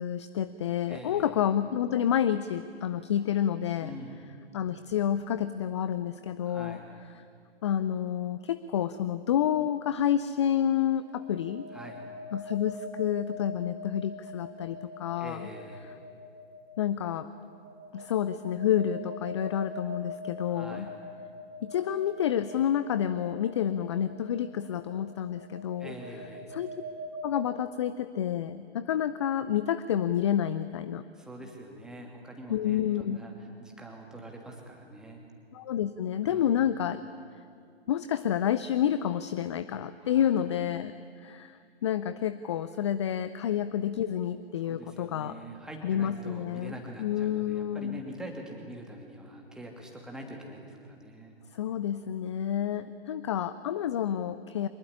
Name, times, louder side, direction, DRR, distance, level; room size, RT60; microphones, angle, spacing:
voice 1, 0.0-4.0 4.5-6.8 7.6-11.7 12.3-15.5 16.8-17.3 17.9-20.9 21.6-25.9 26.5-26.7 27.2-31.0 32.5-33.2 35.5-37.0 37.9-45.4 45.8-48.0 51.5-54.7, left 10 dB, 25° left, 13 dB, 0.6 m, -29 dB
voice 2, 0.9-1.3 3.8-4.3 6.4-6.9 11.7-12.1 15.2-15.9 20.5-20.9 25.8-26.6 31.1-35.2 36.2-36.6 40.0-40.3 44.6-51.4, right 1 dB, ahead, 0 dB, 2.7 m, -44 dB
sound 1, 9.2-9.4 11.0-27.3, left 1 dB, 20° right, 5.2 m, -44 dB
24.0 x 20.5 x 10.0 m, 2.3 s
figure-of-eight pair, 130°, 32 cm